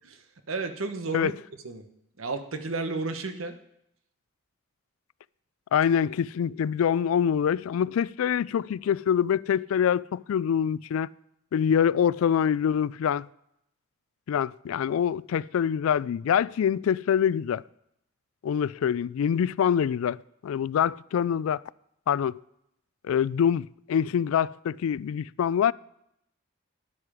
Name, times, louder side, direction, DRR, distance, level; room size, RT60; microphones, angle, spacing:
voice 1, 0.5-1.3 1.6-1.8 2.2-3.5, right 3 dB, 85° right, 1.1 m, -32 dB
voice 2, 5.7-11.1 11.5-13.3 14.3-17.6 18.4-21.6 22.1-22.4 23.0-25.7, left 8 dB, 85° left, 0.3 m, -25 dB
12.0 x 9.8 x 4.9 m
head